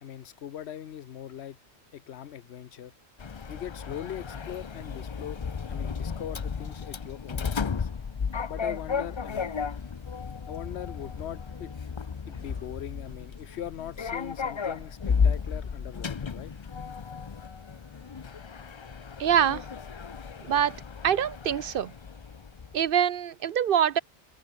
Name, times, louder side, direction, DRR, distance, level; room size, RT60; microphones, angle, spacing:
voice 1, 0.0-1.6 1.9-2.9 3.5-5.4 5.7-7.9 8.5-9.5 10.5-11.7 12.3-16.5, left 10 dB, 80° left, 1.0 m, -41 dB
Sliding door, 3.2-22.8, left 6 dB, 35° left, 0.5 m, -34 dB
voice 2, 19.2-19.7 20.4-21.9 22.7-24.0, right 9 dB, 60° right, 0.7 m, -25 dB
omnidirectional pair, 1.1 m